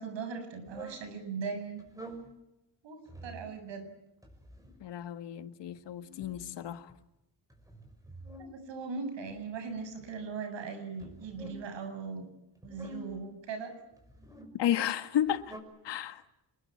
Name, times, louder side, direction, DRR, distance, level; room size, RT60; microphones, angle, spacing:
voice 1, 0.0-1.8 2.8-3.9 8.4-12.3 12.6-13.7, right 5 dB, 85° right, 7.4 m, -39 dB
sound 1, 0.7-1.1 1.8-2.3 3.1-3.5 4.2-4.9 5.8-7.0 7.5-8.5 9.3-10.2 11.0-11.7 12.6-13.2 13.9-14.5 15.2-15.6, right 1 dB, 10° right, 5.8 m, -48 dB
voice 2, 4.8-6.9 14.5-15.6 15.8-16.2, left 11 dB, 75° left, 1.7 m, -32 dB
27.0 x 21.5 x 8.7 m
cardioid pair, 145°, 43 cm